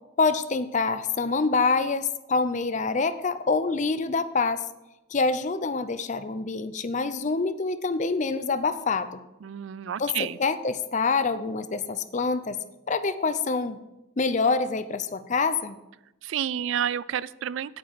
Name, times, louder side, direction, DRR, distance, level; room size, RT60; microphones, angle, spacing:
voice 1, 0.2-4.7 5.1-9.2 10.0-12.6 12.9-13.8 14.2-15.8, left 4 dB, 40° left, 13 dB, 0.6 m, -26 dB
voice 2, 9.4-10.4 16.2-17.8, right 9 dB, 75° right, 19 dB, 0.3 m, -30 dB
9.2 x 9.0 x 4.7 m, 0.94 s
head